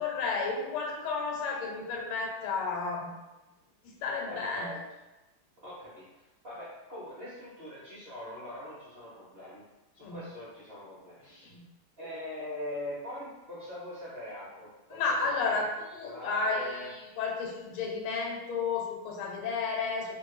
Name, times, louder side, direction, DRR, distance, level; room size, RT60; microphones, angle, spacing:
voice 1, 0.0-3.1 3.8-4.8 10.0-10.2 11.4-11.7 14.9-20.2, left 4 dB, 85° left, -1 dB, 1.6 m, -32 dB
voice 2, 4.3-4.7 5.6-9.6 9.9-11.5 12.0-15.0 15.3-15.6 16.0-16.9, left 1 dB, 50° right, -10 dB, 0.6 m, -42 dB
3.1 x 2.6 x 3.1 m, 1.0 s
omnidirectional pair, 2.3 m